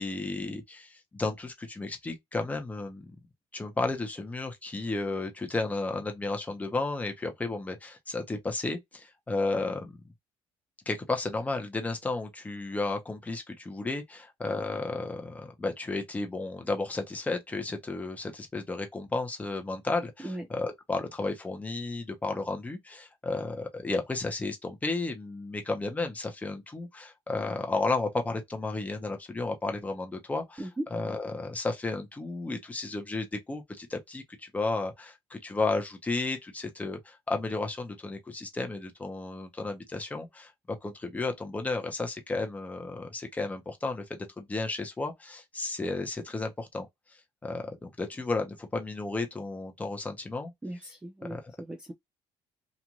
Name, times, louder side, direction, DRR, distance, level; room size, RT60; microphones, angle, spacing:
voice 1, 0.0-3.2 3.5-10.0 10.9-30.6 30.9-40.5 40.8-50.5 51.3-51.4, left 3 dB, 15° left, 0.8 m, -33 dB
voice 2, 30.6-30.9 50.6-51.9, right 1 dB, 10° right, 0.4 m, -38 dB
3.0 x 2.5 x 2.4 m
cardioid pair, 145°, 11 cm